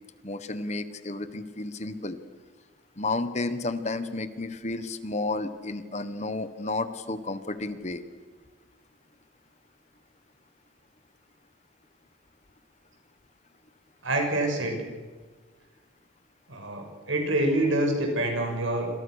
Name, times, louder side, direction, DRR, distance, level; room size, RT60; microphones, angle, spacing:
voice 1, 0.2-2.2 3.0-8.0, left 2 dB, 35° left, 11 dB, 1.3 m, -32 dB
voice 2, 14.0-14.8 16.5-18.9, right 1 dB, 80° right, 3 dB, 6.8 m, -26 dB
27.5 x 26.0 x 6.5 m, 1.4 s
head